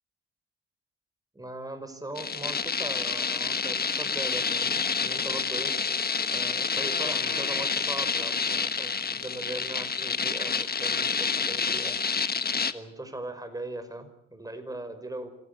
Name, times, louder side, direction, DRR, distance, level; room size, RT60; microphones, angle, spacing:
voice 1, 1.3-5.7 6.3-12.0 12.7-15.3, right 2 dB, 10° right, 8 dB, 5.4 m, -39 dB
sound 1, 2.2-12.7, left 5 dB, 30° left, 1.4 m, -28 dB
26.5 x 18.0 x 8.3 m, 0.75 s
cardioid pair, 90°, 30 cm